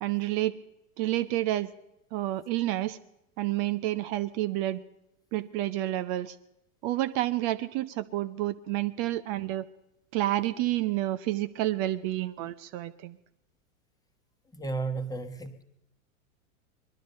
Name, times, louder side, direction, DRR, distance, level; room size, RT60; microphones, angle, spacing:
voice 1, 0.0-0.6 1.0-1.7 2.1-3.0 3.4-4.8 5.3-6.4 6.8-9.7 10.1-13.2, right 15 dB, 40° right, 12 dB, 0.6 m, -29 dB
voice 2, 14.5-15.6, right 3 dB, 10° left, 7 dB, 1.2 m, -33 dB
20.0 x 12.0 x 5.3 m, 0.85 s
hypercardioid pair, 105°, 43 cm